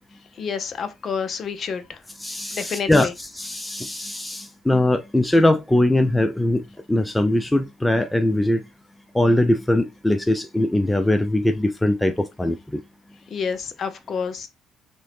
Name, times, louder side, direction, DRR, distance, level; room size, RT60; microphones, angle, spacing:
voice 1, 0.3-2.0 2.5-3.1 13.3-14.5, left 6 dB, 45° left, 0.6 m, -29 dB
voice 2, 2.2-3.1 3.4-8.6 9.1-12.8, left 1 dB, 5° left, 0.3 m, -21 dB
3.7 x 2.6 x 3.4 m
cardioid pair, 110°, 0 cm